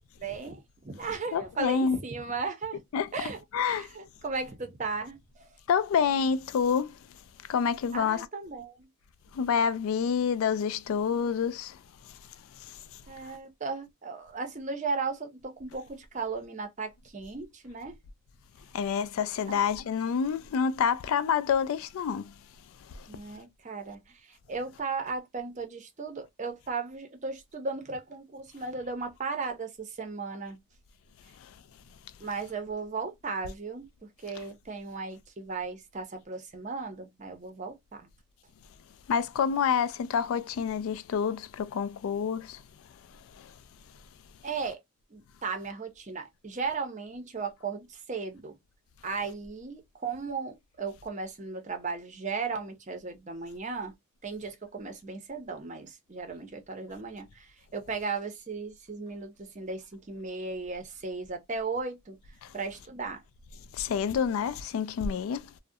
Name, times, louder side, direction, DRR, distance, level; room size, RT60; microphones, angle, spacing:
voice 1, 0.2-2.8 3.1-5.5 7.9-8.9 13.1-18.0 19.5-19.6 23.1-30.6 32.2-33.9 34.2-38.1 44.4-44.8 45.1-48.5 49.0-53.9 54.2-62.2 62.5-63.2, right 4 dB, 35° right, 0.6 m, -36 dB
voice 2, 1.3-2.0 2.9-3.1 3.5-3.9 5.7-6.9 7.5-8.3 9.3-11.8 18.7-22.3 23.0-23.1 39.1-42.6 63.7-65.4, left 7 dB, 75° left, 0.3 m, -27 dB
2.4 x 2.0 x 2.6 m
head